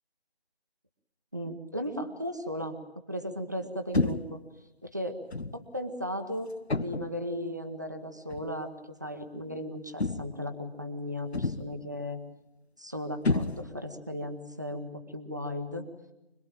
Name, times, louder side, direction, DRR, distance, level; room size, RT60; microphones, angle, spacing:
voice 1, 1.3-2.8 3.1-4.4 4.8-5.2 5.5-8.7 9.0-12.2 12.8-15.8, left 1 dB, 15° right, 6 dB, 1.1 m, -36 dB
sound 1, 3.9-4.4 5.3-5.6 6.7-7.2 8.3-8.5 10.0-10.5 11.3-11.8 13.2-13.9, left 3 dB, 80° left, 1.3 m, -30 dB
25.5 x 20.5 x 9.0 m, 0.92 s
figure-of-eight pair, 170°, 32 cm